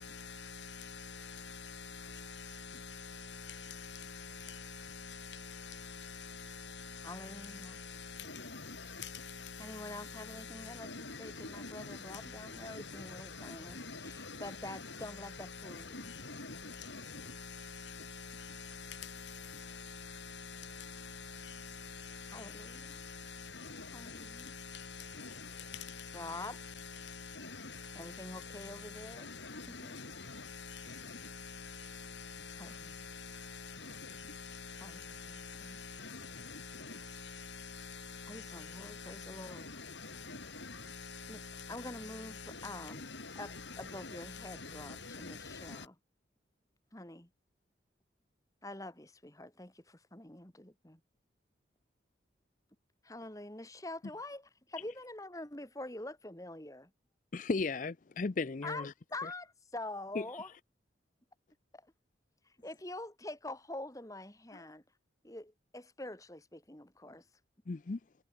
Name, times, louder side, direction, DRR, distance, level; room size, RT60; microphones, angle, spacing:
voice 1, 0.0-45.9, left 4 dB, 70° left, 4.5 m, -46 dB
voice 2, 7.0-7.8 9.6-10.9 11.2-16.0 22.3-23.0 23.9-24.5 26.1-26.6 27.9-29.3 29.7-30.0 32.6-32.9 34.8-35.8 38.3-39.7 41.3-41.4 41.7-43.0 43.4-43.5 43.8-45.9 46.9-47.3 48.6-51.0 53.0-56.9 58.6-60.5 61.7-61.9 62.6-64.8 65.2-67.2, left 2 dB, 15° left, 2.3 m, -46 dB
voice 3, 57.3-58.9 59.2-59.3 60.1-60.2 64.5-64.6 67.7-68.0, left 3 dB, 40° left, 0.5 m, -35 dB
head